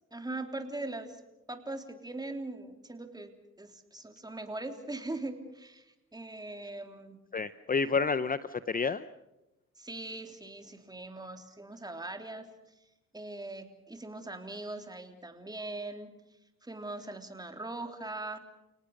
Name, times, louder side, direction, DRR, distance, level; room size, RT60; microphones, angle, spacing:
voice 1, 0.1-1.2 1.5-3.3 3.6-7.2 9.8-12.5 13.1-16.2 16.6-18.4, right 2 dB, 15° right, 5 dB, 3.4 m, -41 dB
voice 2, 7.3-9.0, left 5 dB, 30° left, 13 dB, 0.8 m, -29 dB
30.0 x 19.0 x 6.7 m, 0.93 s
cardioid pair, 90°, 30 cm